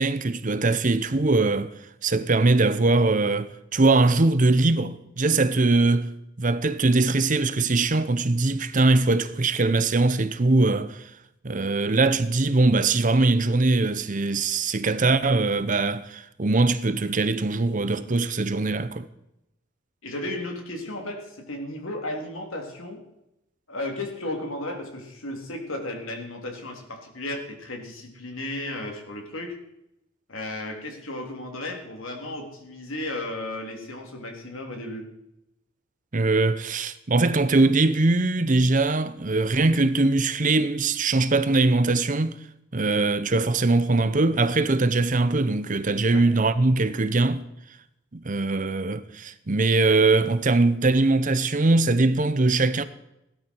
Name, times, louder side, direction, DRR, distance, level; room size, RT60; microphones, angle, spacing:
voice 1, 0.0-1.7 2.0-6.1 6.4-11.0 11.4-19.1 36.1-42.4 42.7-47.5 48.1-52.8, right 3 dB, 40° right, 0.8 m, -21 dB
voice 2, 20.0-23.0 23.7-29.6 30.3-35.1 46.1-46.2, left 1 dB, 85° left, 3.3 m, -34 dB
16.5 x 12.5 x 4.6 m
head